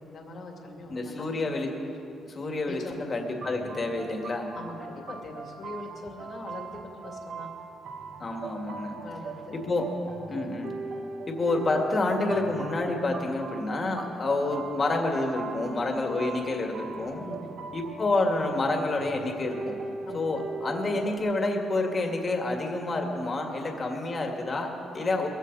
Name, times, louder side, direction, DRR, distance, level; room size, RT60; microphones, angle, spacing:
voice 1, 0.0-1.5 2.7-3.0 4.5-7.5 9.0-9.6 10.0-10.4 17.2-17.5 20.1-20.3, left 2 dB, 55° left, 1 dB, 2.5 m, -42 dB
voice 2, 0.9-1.8 2.3-4.5 8.2-9.2 9.5-9.9 10.3-10.7 11.3-17.2 17.7-19.8 20.1-25.3, left 2 dB, 35° left, 2 dB, 2.2 m, -28 dB
sound 1, 3.4-21.2, right 3 dB, 70° right, 4.0 m, -40 dB
21.5 x 15.5 x 4.1 m, 2.9 s
cardioid pair, 90°, 0 cm